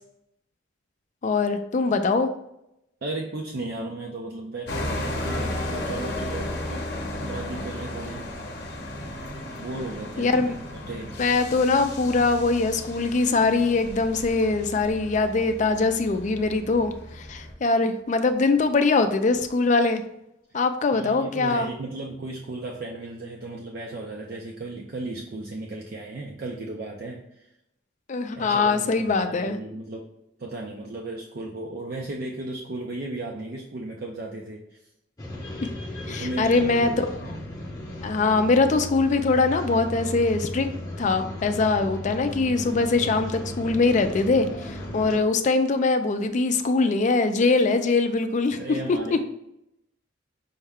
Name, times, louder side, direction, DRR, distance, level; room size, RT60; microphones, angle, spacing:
voice 1, 1.2-2.3 10.2-10.5 11.2-20.0 20.5-21.7 28.1-29.6 36.1-36.9 38.0-40.7 41.0-48.6 49.1-49.2, left 3 dB, 40° left, 8 dB, 0.4 m, -22 dB
voice 2, 3.0-6.9 7.2-8.4 9.6-10.5 10.9-11.2 20.9-27.5 28.3-30.1 30.4-34.9 36.1-37.4 48.5-49.2, right 2 dB, 50° right, -1 dB, 0.5 m, -35 dB
sound 1, 4.7-17.5, left 1 dB, 55° left, 0.7 m, -34 dB
sound 2, 35.2-45.2, left 1 dB, 20° left, 0.7 m, -36 dB
5.5 x 2.2 x 3.5 m, 0.82 s
head